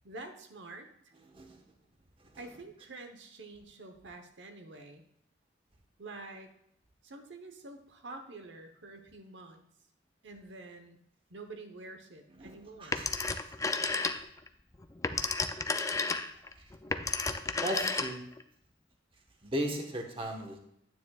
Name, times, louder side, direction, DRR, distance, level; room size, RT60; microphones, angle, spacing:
voice 1, 0.0-0.9 2.4-5.0 6.0-6.5 7.0-9.6 10.2-11.0 11.3-13.0, right 2 dB, 90° right, 5 dB, 1.0 m, -47 dB
voice 2, 1.3-1.6 12.3-13.1 17.6-18.2 19.4-20.6, equal, 30° right, 2 dB, 1.2 m, -36 dB
Telephone, 12.9-14.5 14.8-18.4, left 4 dB, 20° left, 0.4 m, -32 dB
9.6 x 9.2 x 2.3 m, 0.74 s
head